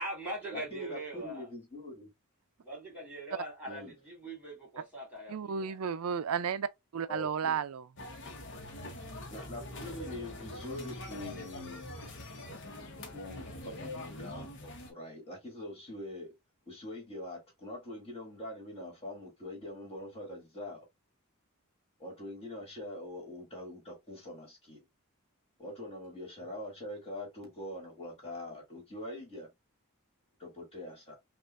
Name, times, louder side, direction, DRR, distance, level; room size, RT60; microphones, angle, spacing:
voice 1, 0.0-1.5 2.6-5.8, right 1 dB, 5° right, 2.8 m, -41 dB
voice 2, 0.5-2.1 3.7-3.9 7.1-7.6 9.3-11.9 13.1-16.3 16.7-20.8 22.0-24.9 25.6-29.5 30.4-31.2, left 1 dB, 30° left, 2.2 m, -44 dB
voice 3, 5.3-7.9, right 7 dB, 70° right, 0.4 m, -33 dB
sound 1, 8.0-14.9, left 1 dB, 55° left, 1.1 m, -43 dB
5.3 x 2.5 x 2.4 m
head